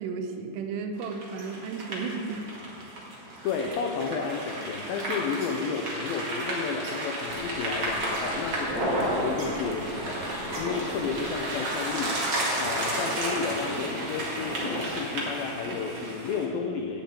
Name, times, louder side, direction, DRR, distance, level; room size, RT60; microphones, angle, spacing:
voice 1, 0.0-2.5, right 5 dB, 80° right, 5 dB, 2.9 m, -33 dB
sound 1, 1.0-16.4, right 1 dB, 45° right, 1.8 m, -32 dB
voice 2, 3.4-12.2 12.5-17.0, left 5 dB, 85° left, 3 dB, 2.0 m, -32 dB
sound 2, 7.3-14.7, left 3 dB, 60° left, 2.1 m, -44 dB
8.4 x 7.4 x 8.8 m, 2.6 s
omnidirectional pair, 5.1 m